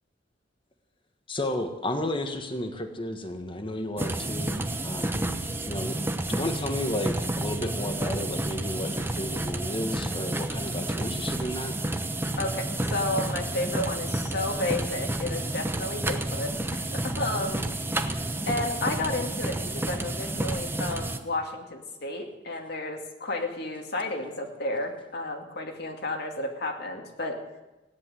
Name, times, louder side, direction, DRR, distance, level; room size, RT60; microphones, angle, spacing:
voice 1, 1.3-6.0 6.3-11.8, left 1 dB, 25° left, 6 dB, 1.6 m, -33 dB
sound 1, 4.0-21.2, right 1 dB, 10° right, 0.9 m, -30 dB
voice 2, 12.4-17.7 18.5-27.4, left 2 dB, 60° left, 3 dB, 2.2 m, -32 dB
16.5 x 10.5 x 7.7 m, 1.0 s
head